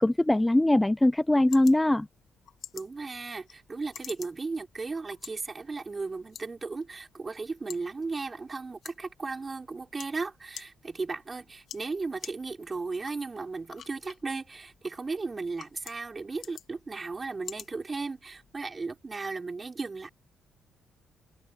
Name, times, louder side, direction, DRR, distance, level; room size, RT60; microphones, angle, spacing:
voice 1, 0.0-2.1, left 1 dB, 10° left, 0.3 m, -22 dB
sound 1, 0.6-18.6, left 9 dB, 65° left, 1.7 m, -50 dB
voice 2, 2.7-20.1, right 4 dB, 30° right, 4.4 m, -36 dB
cardioid pair, 90°, 0 cm